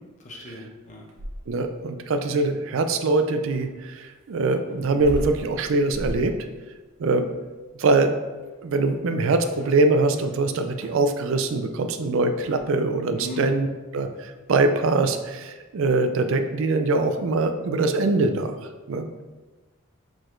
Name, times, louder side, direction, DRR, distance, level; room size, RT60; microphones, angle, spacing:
voice 1, 0.2-1.1 13.2-13.5, left 1 dB, 35° left, 0 dB, 0.7 m, -37 dB
sound 1, 0.8-1.7 3.5-10.4 10.7-11.1 12.4-12.7, equal, 90° right, 0.8 m, -38 dB
voice 2, 1.5-6.3 7.0-7.3 7.8-8.1 8.6-13.7 13.9-18.6 18.9-19.1, right 3 dB, 65° right, 7 dB, 0.4 m, -23 dB
4.7 x 3.9 x 2.5 m, 1.2 s
head